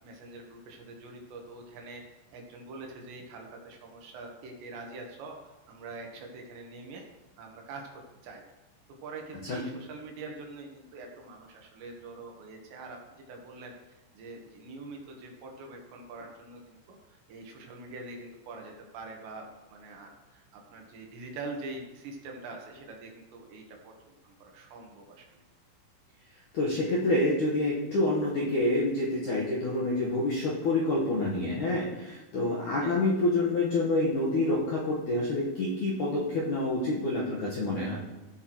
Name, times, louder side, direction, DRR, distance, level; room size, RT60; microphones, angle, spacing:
voice 1, 0.0-2.0 2.3-7.0 7.4-8.4 9.0-13.7 14.1-25.4 32.7-33.1, right 3 dB, 70° right, 1 dB, 3.4 m, -44 dB
voice 2, 26.5-38.0, left 2 dB, 70° left, -5 dB, 1.9 m, -27 dB
16.5 x 8.2 x 3.1 m, 1.0 s
omnidirectional pair, 5.6 m